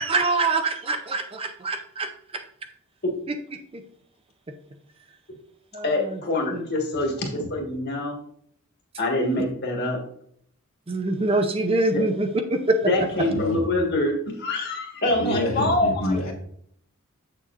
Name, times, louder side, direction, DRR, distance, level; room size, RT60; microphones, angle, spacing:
voice 1, 0.0-2.4 3.7-3.8 5.7-6.0 6.5-6.6 10.9-12.8, right 2 dB, 25° right, 7 dB, 0.5 m, -24 dB
voice 2, 5.8-8.2 9.0-10.0 11.9-12.0 12.9-16.3, left 2 dB, 50° left, 0 dB, 1.5 m, -25 dB
voice 3, 12.9-13.7 15.0-16.3, left 1 dB, 65° left, 0 dB, 1.4 m, -28 dB
7.3 x 6.6 x 2.5 m, 0.67 s
head